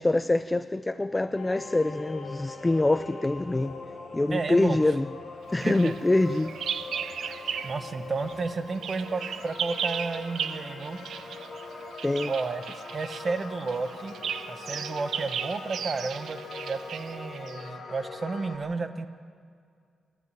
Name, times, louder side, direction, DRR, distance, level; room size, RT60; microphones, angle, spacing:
voice 1, 0.0-3.7 4.1-5.1 5.5-6.5 12.0-12.3, left 2 dB, 15° left, 13 dB, 0.4 m, -25 dB
sound 1, 1.3-18.6, left 3 dB, 60° left, 5.8 m, -42 dB
voice 2, 4.3-4.9 5.6-5.9 7.6-11.0 12.3-12.6 12.9-14.1 14.5-19.1, right 4 dB, 40° right, 9 dB, 1.4 m, -32 dB
Bird vocalization bird call bird song, 5.6-7.9 8.2-17.7, right 8 dB, 80° right, 0.9 m, -36 dB
28.5 x 12.0 x 9.2 m, 2.2 s
cardioid pair, 115°, 0 cm